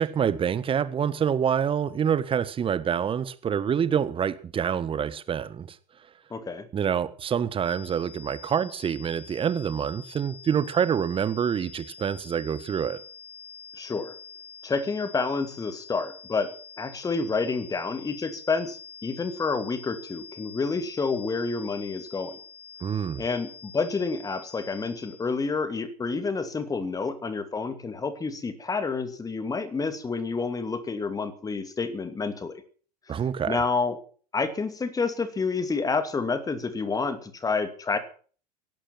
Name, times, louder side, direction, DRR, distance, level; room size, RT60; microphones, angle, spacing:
voice 1, 0.0-5.7 6.7-13.0 22.8-23.2 33.1-33.6, right 8 dB, 25° right, 1.5 m, -26 dB
voice 2, 6.3-6.7 13.8-14.1 14.6-16.5 16.8-18.8 19.0-22.4 23.2-32.6 33.5-34.0 34.3-38.0, left 4 dB, 15° left, 2.5 m, -29 dB
sound 1, 7.6-25.4, left 6 dB, 70° left, 2.9 m, -46 dB
17.0 x 12.0 x 6.0 m
figure-of-eight pair, 80°, 21 cm